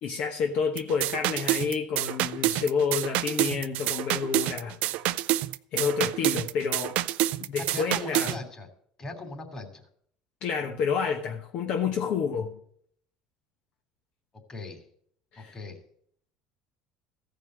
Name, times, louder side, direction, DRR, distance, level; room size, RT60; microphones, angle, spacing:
voice 1, 0.0-4.8 5.7-7.0 7.4-8.4 10.4-12.6 15.3-15.6, left 6 dB, 60° left, 1.1 m, -29 dB
sound 1, 0.8-8.4, right 15 dB, 65° right, 0.5 m, -28 dB
voice 2, 7.7-8.7 9.0-9.8 14.5-14.8 15.4-15.8, left 2 dB, 25° left, 2.8 m, -39 dB
15.0 x 5.4 x 7.5 m
supercardioid pair, 105°, 3 cm